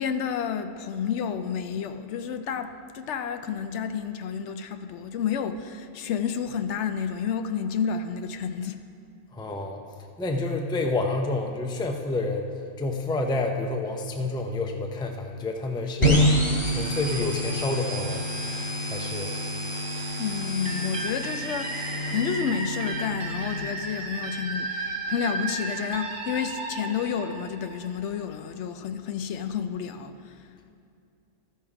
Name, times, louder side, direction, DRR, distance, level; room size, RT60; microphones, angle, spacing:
voice 1, 0.0-8.8 20.2-30.5, left 7 dB, 75° left, 9 dB, 0.9 m, -30 dB
voice 2, 9.3-9.8 10.2-12.5 12.8-16.2 16.6-18.2 18.9-19.3, left 2 dB, 5° left, 3 dB, 0.4 m, -29 dB
sound 1, 16.0-23.6, equal, 25° left, 1.4 m, -27 dB
sound 2, 20.6-28.2, right 3 dB, 85° right, 1.6 m, -34 dB
13.5 x 5.7 x 4.8 m, 2.5 s
omnidirectional pair, 1.2 m